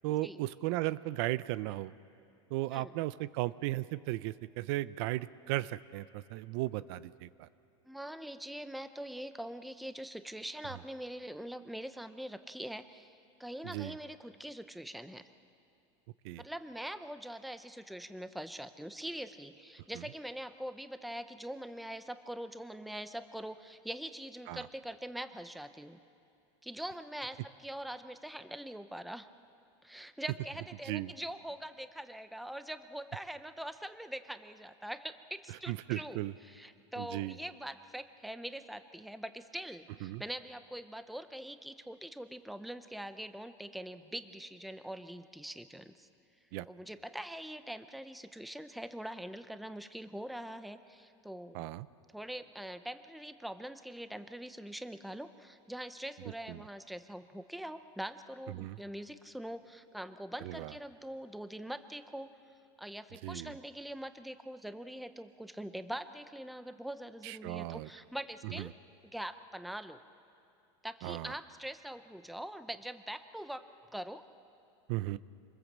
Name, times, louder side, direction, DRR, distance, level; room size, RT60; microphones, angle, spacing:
voice 1, 0.0-1.9 2.5-7.5 13.6-13.9 16.2-16.4 24.5-24.6 30.8-31.1 35.7-36.3 37.0-37.4 40.0-40.2 46.5-46.7 51.5-51.9 56.5-56.6 58.5-58.8 60.4-60.7 63.2-63.5 67.2-67.9 68.4-68.7 71.0-71.3 74.9-75.2, right 17 dB, 60° right, 17 dB, 0.6 m, -36 dB
voice 2, 7.8-15.2 16.4-26.0 26.6-29.3 29.8-46.1 46.7-51.6 52.1-62.3 62.8-68.7 69.0-70.0 70.8-73.7 73.9-74.2, right 1 dB, ahead, 11 dB, 0.6 m, -43 dB
26.5 x 21.0 x 7.4 m, 2.6 s
supercardioid pair, 140°, 16 cm